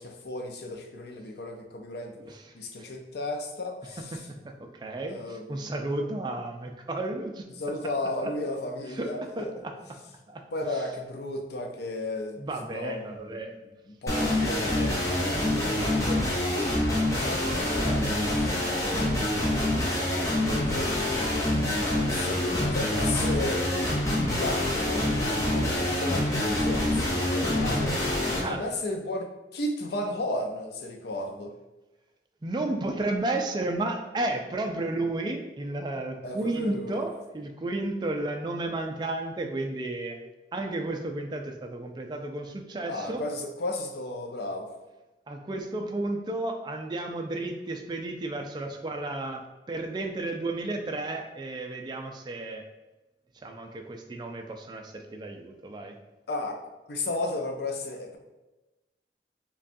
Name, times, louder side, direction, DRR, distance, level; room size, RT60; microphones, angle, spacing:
voice 1, 0.0-2.2 2.5-4.3 5.0-5.7 7.6-9.5 10.5-13.4 13.9-15.0 15.7-16.2 16.6-18.5 20.3-23.7 24.1-28.0 28.4-31.5 36.2-37.0 42.9-44.7 56.3-56.6 56.9-58.2, left 2 dB, 65° left, 3 dB, 0.5 m, -34 dB
voice 2, 4.1-7.4 8.9-9.1 9.4-9.7 10.3-10.4 12.4-13.6 18.9-19.2 28.4-28.6 32.4-40.2 40.5-43.2 45.3-49.4 49.7-52.6 53.4-55.9, right 2 dB, 25° right, 4 dB, 0.3 m, -32 dB
sound 1, 14.1-28.4, left 1 dB, 20° left, 0.8 m, -26 dB
5.1 x 2.3 x 2.6 m, 1.1 s
head